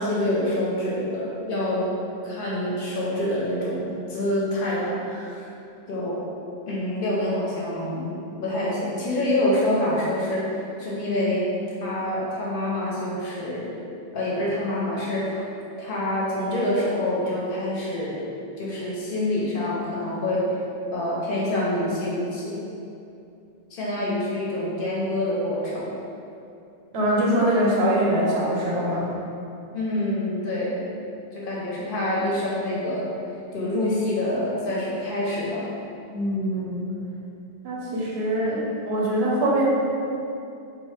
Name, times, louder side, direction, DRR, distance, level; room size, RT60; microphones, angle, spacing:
voice 1, 0.0-2.0 2.2-5.5 5.9-6.2 6.7-8.1 8.4-11.5 11.8-13.8 14.1-15.4 15.8-18.2 18.6-20.5 20.9-22.7 23.7-25.9 29.7-30.7 31.3-33.0 33.5-35.7, left 1 dB, 65° left, -6 dB, 0.7 m, -26 dB
voice 2, 26.9-29.0 36.1-36.8 37.6-39.6, right 1 dB, 80° right, -5 dB, 0.9 m, -23 dB
3.0 x 2.0 x 3.0 m, 2.7 s
omnidirectional pair, 1.1 m